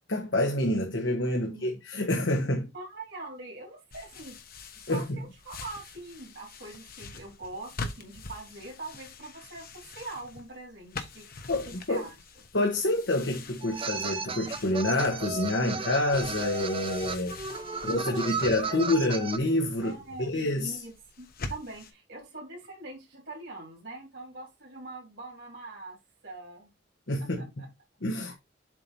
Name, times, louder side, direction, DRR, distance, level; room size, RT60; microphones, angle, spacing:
voice 1, 0.1-2.7 4.9-5.2 11.5-12.1 12.5-17.4 17.8-20.8 27.1-27.6 28.0-28.3, left 1 dB, 75° left, 1.4 m, -28 dB
voice 2, 1.4-1.8 2.7-4.4 4.8-11.2 11.7-12.1 17.5-18.8 19.8-26.7 27.4-27.5 28.1-28.3, right 2 dB, 75° right, 2.8 m, -43 dB
sound 1, 3.9-21.9, left 3 dB, 55° left, 1.1 m, -45 dB
sound 2, 13.6-19.4, right 4 dB, 30° right, 0.7 m, -34 dB
7.6 x 2.9 x 5.4 m
head